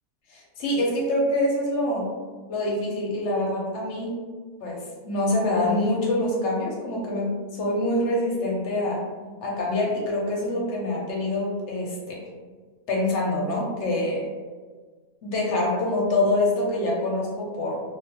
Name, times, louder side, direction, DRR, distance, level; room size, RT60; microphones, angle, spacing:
voice 1, 0.3-2.1 2.5-4.1 4.6-9.0 9.4-12.2 12.9-14.3 15.2-17.8, left 1 dB, 60° left, -3 dB, 0.8 m, -25 dB
2.4 x 2.1 x 2.7 m, 1.5 s
omnidirectional pair, 1.6 m